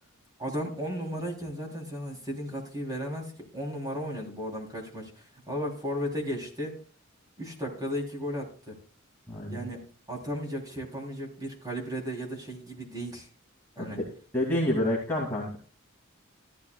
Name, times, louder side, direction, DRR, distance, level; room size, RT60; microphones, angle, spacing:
voice 1, 0.4-6.8 7.4-8.7 9.5-13.3 13.8-14.0, equal, 15° right, 0 dB, 3.3 m, -35 dB
voice 2, 9.3-9.6 13.8-14.1 14.3-15.6, left 1 dB, 10° left, -5 dB, 2.5 m, -28 dB
14.0 x 12.5 x 2.3 m, 0.42 s
head